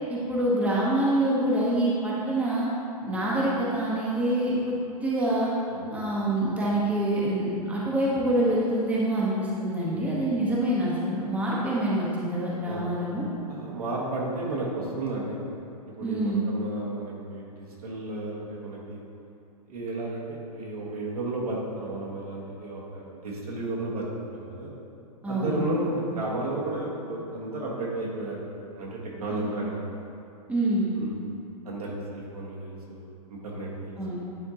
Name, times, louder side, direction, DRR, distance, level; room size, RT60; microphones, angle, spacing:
voice 1, 0.1-2.7 3.1-5.5 5.9-13.2 16.0-16.4 25.2-25.6 29.3-29.5 30.5-30.9 34.0-34.2, right 1 dB, 5° right, -6 dB, 0.9 m, -26 dB
voice 2, 9.9-10.4 12.6-13.0 13.5-15.4 16.0-19.0 19.6-24.7 25.3-28.4 28.7-29.8 31.0-31.1 31.6-34.0 34.3-34.4, right 2 dB, 70° right, -4 dB, 1.5 m, -33 dB
9.3 x 3.5 x 2.9 m, 2.6 s
hypercardioid pair, 115°, 20 cm